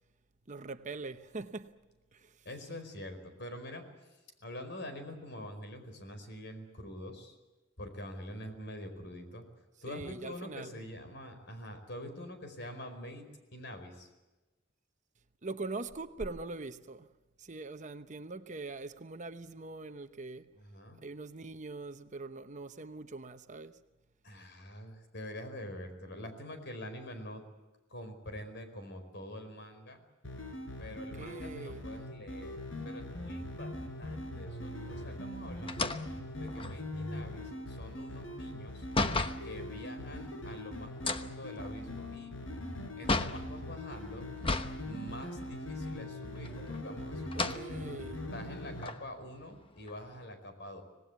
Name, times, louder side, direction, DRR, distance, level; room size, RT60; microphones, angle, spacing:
voice 1, 0.5-1.7 2.1-2.4 9.9-10.7 15.4-17.1 17.4-20.5 21.0-23.8 31.1-31.8 47.3-48.2, right 3 dB, 40° right, 0.9 m, -42 dB
voice 2, 2.4-7.4 7.8-9.4 9.8-14.1 20.5-21.0 24.2-27.5 27.9-30.0 30.8-32.6 32.8-35.9 36.4-38.9 39.4-42.4 43.0-44.3 44.8-47.6 48.3-50.8, left 1 dB, 60° left, 4.8 m, -45 dB
sound 1, 30.2-48.9, left 1 dB, 80° left, 4.8 m, -41 dB
sound 2, 35.7-39.5 40.9-43.5 44.4-44.8 45.2-45.3 46.3-46.9 47.2-47.6 48.3-48.4 48.8-50.2, left 3 dB, 25° left, 1.1 m, -34 dB
26.0 x 19.0 x 8.2 m
head